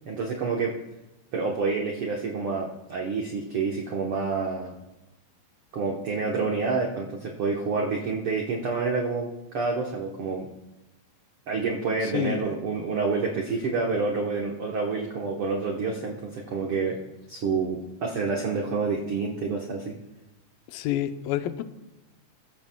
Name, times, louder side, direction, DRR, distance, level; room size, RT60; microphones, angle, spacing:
voice 1, 0.0-0.7 1.3-4.7 5.7-9.3 9.5-10.5 11.5-17.0 17.3-19.9, right 4 dB, 60° right, 0 dB, 1.5 m, -28 dB
voice 2, 12.0-12.6 20.7-21.6, left 12 dB, 85° left, 9 dB, 2.4 m, -29 dB
21.5 x 15.5 x 2.3 m, 1.0 s
omnidirectional pair, 4.0 m